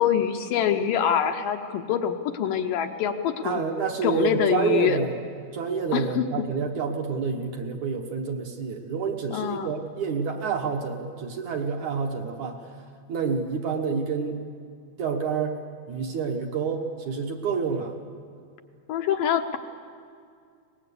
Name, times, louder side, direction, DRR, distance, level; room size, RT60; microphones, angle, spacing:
voice 1, 0.0-3.6 4.0-5.0 5.9-6.4 9.3-9.7 18.9-19.6, left 9 dB, 75° left, 5 dB, 2.3 m, -25 dB
voice 2, 3.4-5.2 5.5-12.6 13.1-14.4 15.0-15.6 15.9-17.9, right 5 dB, 60° right, 2 dB, 2.3 m, -28 dB
23.5 x 19.5 x 8.4 m, 2.3 s
omnidirectional pair, 4.4 m